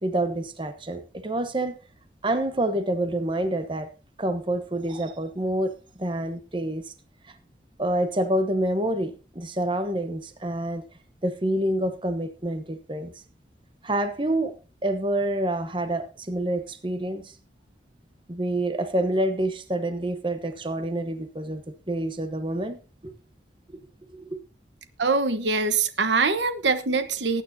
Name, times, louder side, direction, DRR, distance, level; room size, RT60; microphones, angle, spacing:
voice 1, 0.0-1.7 2.2-3.9 4.2-6.9 7.3-7.4 7.8-10.8 11.2-13.1 13.8-14.5 14.8-17.3 18.3-23.1 24.1-24.3, right 1 dB, 30° right, 1.0 m, -27 dB
voice 2, 25.0-27.4, right 4 dB, 85° right, 1.1 m, -23 dB
19.5 x 9.2 x 2.7 m
head